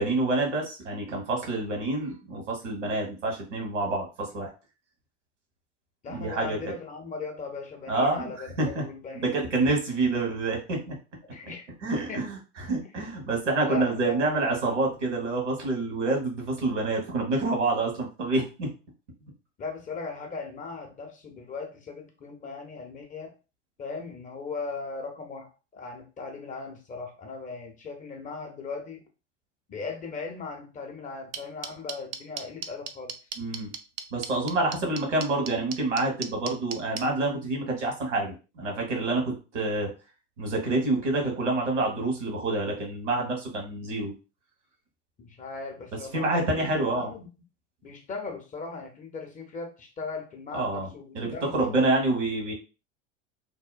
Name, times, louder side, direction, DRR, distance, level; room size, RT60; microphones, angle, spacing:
voice 1, 0.0-4.5 6.1-6.7 7.9-8.3 8.6-8.8 9.1-11.0 11.8-18.7 33.4-33.7 34.1-39.9 40.4-44.1 46.1-47.1 50.5-50.9 51.1-52.5, right 2 dB, 75° right, 0 dB, 1.2 m, -27 dB
voice 2, 6.0-9.5 11.3-11.7 12.1-12.2 13.6-14.8 19.6-23.3 23.8-29.0 29.7-33.1 45.2-47.3 47.8-51.9, left 4 dB, 20° left, 3 dB, 0.5 m, -38 dB
sound 1, 31.3-37.0, right 8 dB, 55° right, 0.5 m, -34 dB
2.7 x 2.1 x 2.3 m, 0.32 s
figure-of-eight pair, 80°, 37 cm